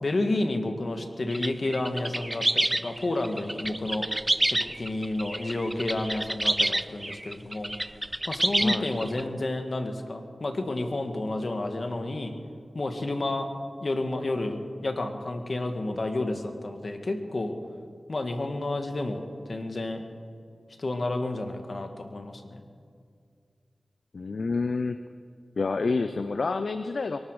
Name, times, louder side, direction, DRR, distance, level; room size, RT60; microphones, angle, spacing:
voice 1, 0.0-4.2 4.5-7.7 8.3-12.3 12.7-13.5 13.8-17.5 18.1-19.2 19.5-20.0 20.8-22.7, left 2 dB, 60° left, 6 dB, 1.7 m, -30 dB
sound 1, 1.3-9.2, right 1 dB, 25° right, 0.5 m, -28 dB
voice 2, 24.1-25.0 25.6-27.2, left 4 dB, 75° left, 10 dB, 0.5 m, -28 dB
23.0 x 12.5 x 4.9 m, 2.2 s
cardioid pair, 40°, 0 cm